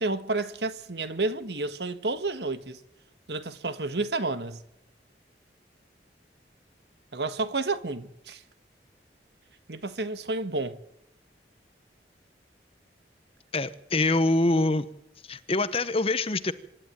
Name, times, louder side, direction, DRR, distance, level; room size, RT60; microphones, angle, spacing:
voice 1, 0.0-2.8 3.3-4.6 7.1-8.4 9.7-10.8, right 3 dB, 70° right, 1.5 m, -30 dB
voice 2, 13.5-14.9 15.2-16.5, left 2 dB, 35° left, 1.0 m, -25 dB
25.5 x 11.5 x 9.2 m
head